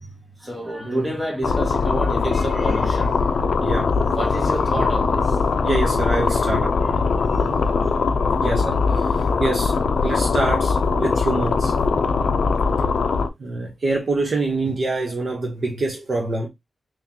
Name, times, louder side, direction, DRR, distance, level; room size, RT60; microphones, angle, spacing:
voice 1, 0.4-3.2 4.1-5.4 6.3-8.1, right 1 dB, 10° right, 1.8 m, -30 dB
sound 1, 1.4-13.3, left 4 dB, 75° left, 0.4 m, -21 dB
voice 2, 3.6-3.9 5.6-7.1 8.4-9.7 10.0-11.7 13.4-16.5, right 2 dB, 55° right, 0.9 m, -25 dB
3.7 x 3.0 x 2.8 m
wide cardioid pair, 140°, 0 cm